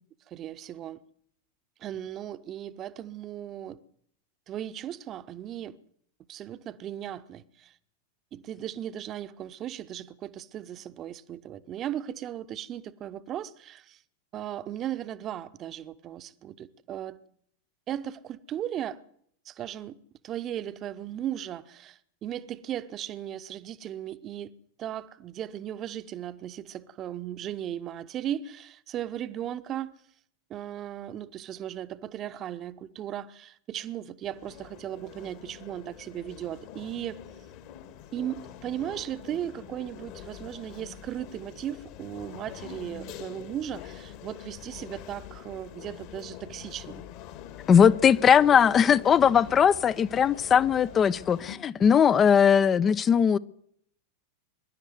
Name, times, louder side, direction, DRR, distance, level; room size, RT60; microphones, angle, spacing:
voice 1, 0.3-1.0 1.8-3.8 4.5-5.8 6.3-7.7 8.3-14.0 14.3-17.2 17.9-19.0 19.4-20.0 20.2-24.5 24.8-29.9 30.5-37.2 38.1-47.0, right 11 dB, 30° right, 1.1 m, -37 dB
sound 1, 34.2-51.6, left 10 dB, 45° left, 2.2 m, -45 dB
voice 2, 47.7-53.4, left 7 dB, 25° left, 0.8 m, -20 dB
23.5 x 11.5 x 9.4 m
figure-of-eight pair, 90°, 0 cm